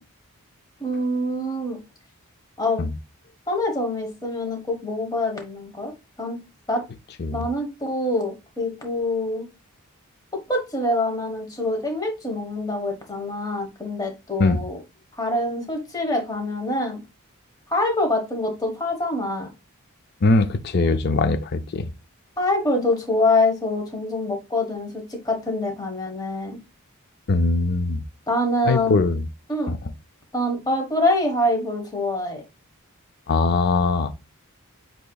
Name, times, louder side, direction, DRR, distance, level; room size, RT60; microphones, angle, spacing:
voice 1, 0.8-1.8 2.6-2.8 3.5-5.9 6.2-6.4 6.7-6.8 7.3-9.4 10.5-14.8 15.2-17.0 17.7-19.5 22.4-26.6 28.3-29.0 29.5-29.7 30.3-32.4, left 1 dB, 15° left, 1.3 m, -25 dB
voice 2, 20.2-21.9 27.3-28.0 28.7-29.2 29.7-29.8 33.3-34.1, left 3 dB, 45° left, 0.5 m, -21 dB
8.0 x 2.9 x 2.3 m
head